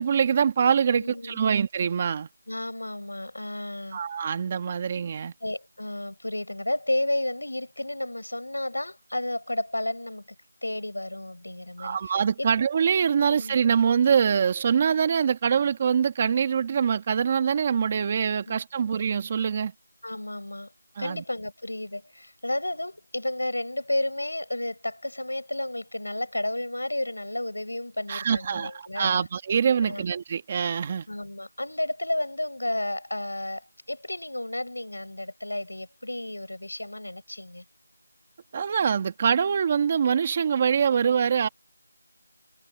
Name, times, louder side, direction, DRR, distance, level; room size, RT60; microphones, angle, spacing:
voice 1, 0.0-2.3 3.9-5.3 11.8-19.7 21.0-21.2 28.1-31.1 38.5-41.5, right 7 dB, 15° right, 1.9 m, -24 dB
voice 2, 0.9-1.5 2.5-4.0 5.4-10.3 10.6-12.5 13.2-13.6 18.5-18.6 20.0-20.7 21.0-29.3 29.8-30.0 31.1-37.6, left 1 dB, 70° left, 6.4 m, -32 dB
figure-of-eight pair, 175°, 0 cm